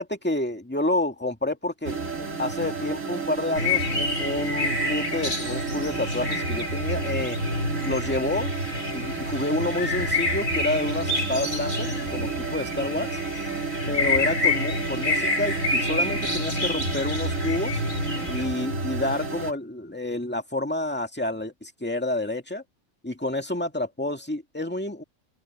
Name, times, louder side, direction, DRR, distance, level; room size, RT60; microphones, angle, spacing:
voice 1, 0.0-7.4 7.8-8.5 8.9-13.2 13.9-17.8 18.3-22.6 23.0-25.0, left 1 dB, 5° left, 2.2 m, -29 dB
sound 1, 1.8-19.5, right 3 dB, 65° right, 3.4 m, -31 dB
sound 2, 3.6-18.4, left 2 dB, 70° left, 8.3 m, -28 dB
open air
omnidirectional pair, 1.4 m